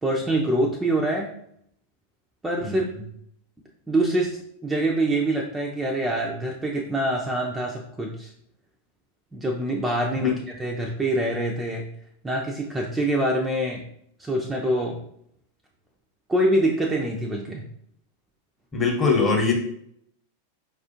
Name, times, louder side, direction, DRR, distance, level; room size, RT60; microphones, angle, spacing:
voice 1, 0.0-1.3 2.4-2.9 3.9-8.3 9.3-10.3 10.6-11.9 12.2-13.8 14.2-15.0 16.3-17.7, right 1 dB, 10° right, 0 dB, 0.4 m, -25 dB
voice 2, 2.6-3.0 10.2-10.3 18.7-19.6, left 4 dB, 20° left, 0 dB, 0.9 m, -22 dB
4.7 x 2.4 x 2.8 m, 0.69 s
figure-of-eight pair, 90°, 0 cm